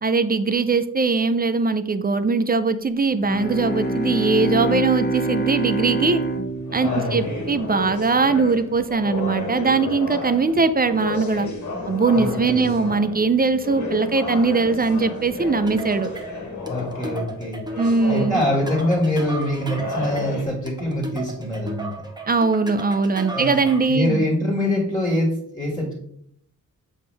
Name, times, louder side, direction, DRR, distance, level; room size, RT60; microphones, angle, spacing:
voice 1, 0.0-6.2 6.7-11.5 11.9-16.1 17.8-18.4 22.3-24.2, right 4 dB, 30° right, 11 dB, 0.4 m, -21 dB
Bowed string instrument, 3.1-8.0, right 2 dB, 30° left, 1.1 m, -26 dB
sound 1, 5.9-20.4, left 3 dB, 65° left, 1.7 m, -32 dB
voice 2, 6.8-7.3 12.1-12.6 16.6-17.6 18.0-21.9 23.3-25.9, left 1 dB, 10° left, -2 dB, 1.9 m, -24 dB
sound 2, 15.7-24.0, right 3 dB, 15° right, 0.9 m, -35 dB
7.0 x 5.1 x 3.4 m, 0.69 s
wide cardioid pair, 115°, 32 cm